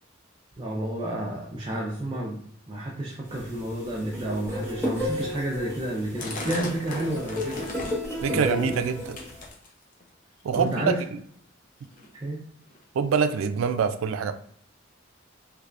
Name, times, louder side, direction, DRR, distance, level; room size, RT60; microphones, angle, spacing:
voice 1, 0.6-7.6 8.3-8.8 10.5-11.0 12.1-12.4, right 1 dB, 25° right, 0.5 m, -31 dB
sound 1, 3.3-9.5, left 1 dB, 15° left, 0.9 m, -33 dB
sound 2, 6.2-8.1 8.5-8.9 9.2-10.0 10.5-10.9 11.6-11.7 11.9-12.1 12.7-12.8 13.5-13.6, left 2 dB, 40° left, 0.6 m, -37 dB
voice 2, 8.2-9.2 10.4-10.8 12.9-14.3, right 6 dB, 90° right, 0.3 m, -25 dB
3.3 x 3.2 x 2.5 m
head